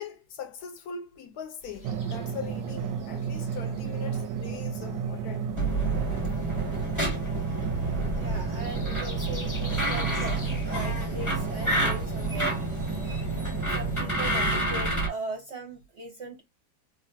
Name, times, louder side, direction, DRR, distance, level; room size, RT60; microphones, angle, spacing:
voice 1, 0.0-5.5 13.1-13.2, left 7 dB, 70° left, 1.0 m, -41 dB
sound 1, 1.6-13.2, right 1 dB, 30° left, 0.3 m, -47 dB
Drum, 1.8-14.8, right 7 dB, 85° right, 1.2 m, -34 dB
sound 2, 5.5-15.1, right 1 dB, 15° left, 1.0 m, -29 dB
voice 2, 8.1-12.9 13.6-16.4, right 2 dB, 55° right, 0.8 m, -39 dB
3.2 x 2.4 x 2.5 m
omnidirectional pair, 1.9 m